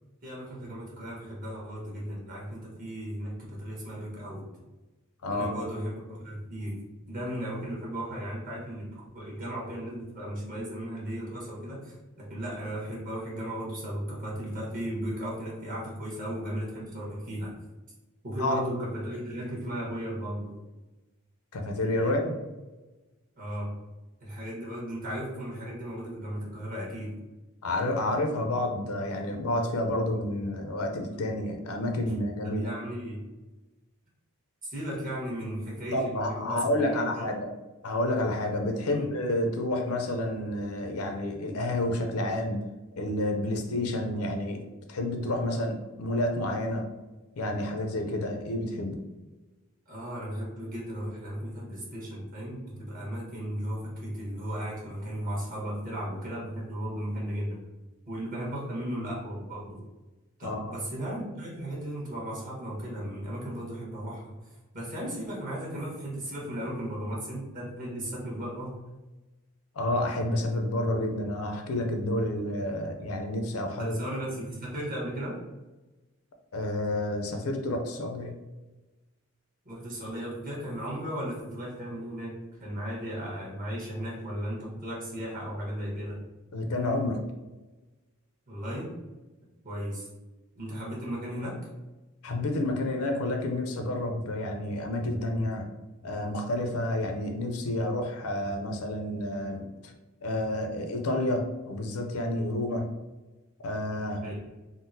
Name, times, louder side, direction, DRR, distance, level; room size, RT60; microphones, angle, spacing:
voice 1, 0.2-4.5 5.3-6.8 7.1-17.5 18.2-20.6 22.0-22.3 23.4-23.7 24.2-27.2 32.4-33.2 34.6-37.2 38.9-39.1 49.9-57.6 58.1-59.8 60.4-68.8 73.8-75.4 79.6-86.2 88.5-88.9 89.6-90.1 90.5-91.6 104.2-104.4, equal, 40° right, -5 dB, 1.2 m, -36 dB
voice 2, 5.2-5.5 18.4-18.6 21.5-22.3 27.6-32.7 35.9-37.5 37.8-42.6 43.0-46.9 47.4-49.0 60.4-60.7 69.7-73.9 76.5-78.3 86.5-87.2 92.2-95.7 96.0-99.9 100.2-102.9 103.6-104.2, left 1 dB, 75° left, 3 dB, 0.5 m, -29 dB
3.7 x 2.0 x 2.6 m, 1.1 s
head